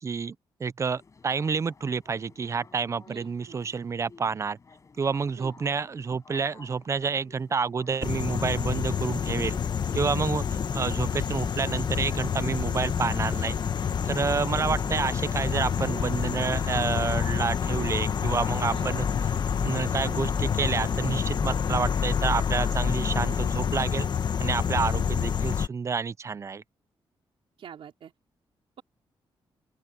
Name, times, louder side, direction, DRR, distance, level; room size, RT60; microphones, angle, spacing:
voice 1, 0.0-4.6 5.0-9.6 9.9-10.4 10.7-13.6 14.1-19.1 19.6-24.1 24.4-26.6, right 5 dB, 30° right, 0.5 m, -29 dB
sound 1, 1.0-17.9, left 4 dB, 35° left, 8.0 m, -54 dB
voice 2, 3.1-3.6 5.4-5.5 10.2-10.4 18.7-18.9 21.6-21.8 27.6-28.1, right 8 dB, 75° right, 4.5 m, -45 dB
sound 2, 8.0-25.7, left 7 dB, 50° left, 1.2 m, -28 dB
sound 3, 8.6-22.0, left 2 dB, 20° left, 3.4 m, -40 dB
open air
wide cardioid pair, 135°, 9 cm